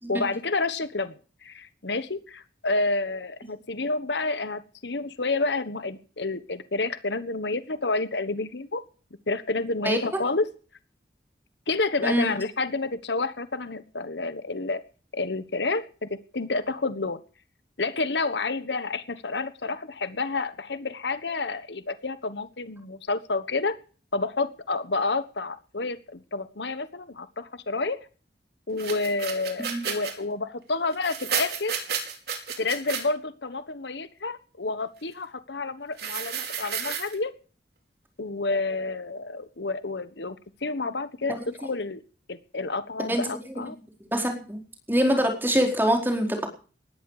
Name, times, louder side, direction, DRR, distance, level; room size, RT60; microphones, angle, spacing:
voice 1, 0.1-1.1 1.4-8.8 9.3-10.5 11.7-14.8 15.1-17.2 17.8-23.8 24.1-28.0 28.7-31.7 32.6-37.3 38.2-40.4 40.6-42.0 42.3-43.8, left 3 dB, 75° left, 13 dB, 1.3 m, -29 dB
voice 2, 12.0-12.3 29.6-29.8 43.1-43.3 44.1-44.6 44.9-46.5, equal, 10° right, 3 dB, 4.5 m, -24 dB
sound 1, 28.8-30.1 30.9-33.0 36.0-37.1, right 7 dB, 65° right, 5.0 m, -31 dB
19.0 x 14.5 x 5.0 m, 0.39 s
head